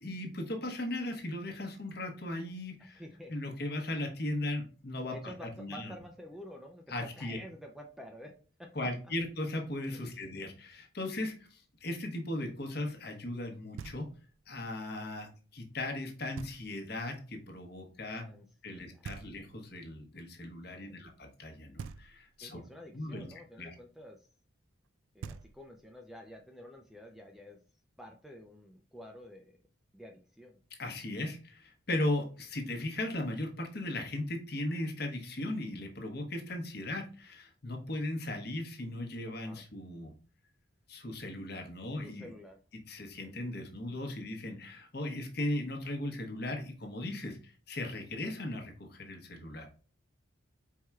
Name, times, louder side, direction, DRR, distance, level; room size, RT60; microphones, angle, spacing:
voice 1, 0.0-3.0 3.3-5.9 6.9-7.4 8.7-14.1 14.5-18.3 18.6-22.6 22.9-23.7 30.7-40.1 40.9-42.3 42.7-49.7, left 1 dB, 50° left, 3 dB, 1.0 m, -37 dB
voice 2, 2.8-3.5 5.1-8.3 8.6-8.9 9.9-10.2 18.2-19.3 20.7-21.0 22.4-24.2 25.1-27.6 28.0-29.5 29.9-30.6 39.3-39.6 42.0-42.6 43.2-43.3, equal, ahead, 2 dB, 0.4 m, -50 dB
Knock, 13.8-14.4 16.4-17.0 19.0-19.8 21.8-22.5 24.8-24.9 25.2-26.0, right 5 dB, 85° right, 0.3 m, -46 dB
4.7 x 4.3 x 2.3 m, 0.38 s
head